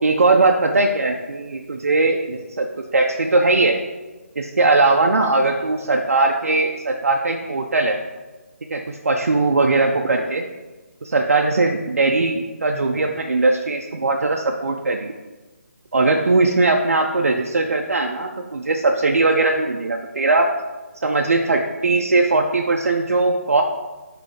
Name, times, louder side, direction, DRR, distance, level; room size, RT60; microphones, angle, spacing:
voice 1, 0.0-2.7 2.9-3.8 4.4-8.0 8.7-10.4 11.0-15.1 15.9-20.5 21.0-23.6, right 3 dB, 65° right, 2 dB, 0.5 m, -19 dB
8.4 x 3.3 x 3.6 m, 1.2 s
figure-of-eight pair, 150°, 8 cm